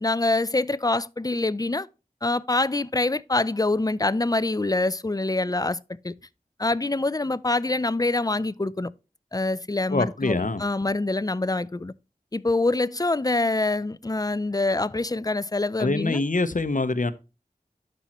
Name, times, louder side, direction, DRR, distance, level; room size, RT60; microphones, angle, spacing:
voice 1, 0.0-1.9 2.2-5.8 6.0-6.1 6.6-8.9 9.3-11.9 12.3-16.2, left 2 dB, 25° left, 0.5 m, -25 dB
voice 2, 9.9-10.6 15.8-17.1, left 3 dB, 60° left, 0.9 m, -24 dB
11.5 x 5.5 x 3.0 m
wide cardioid pair, 45°, 15 cm